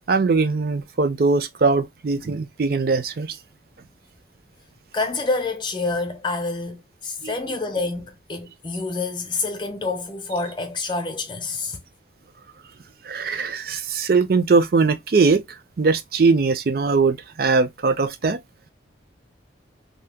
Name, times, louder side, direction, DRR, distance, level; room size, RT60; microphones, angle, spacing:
voice 1, 0.1-3.4 7.2-7.3 13.1-15.4 15.8-18.4, right 4 dB, 50° right, 0.4 m, -20 dB
voice 2, 4.9-11.8, left 3 dB, 25° left, 0.6 m, -27 dB
2.8 x 2.1 x 3.4 m
head